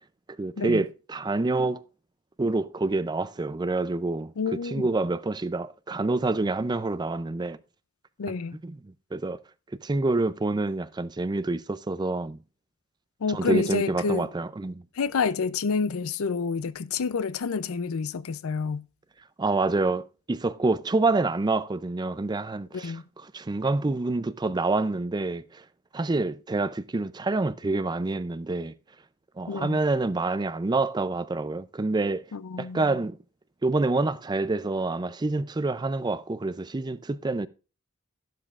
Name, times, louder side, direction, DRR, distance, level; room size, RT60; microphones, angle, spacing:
voice 1, 0.4-1.8 2.4-7.6 8.6-9.4 9.8-12.4 13.3-14.8 19.4-22.9 23.3-25.6 25.9-28.7 29.4-32.2 32.6-33.2 33.6-37.5, right 3 dB, 20° right, 0.4 m, -27 dB
voice 2, 4.4-4.9 8.2-8.6 13.2-14.3 14.9-18.9 22.7-23.1 29.5-29.8 32.3-33.0, left 5 dB, 80° left, 0.5 m, -29 dB
12.0 x 11.0 x 2.4 m
head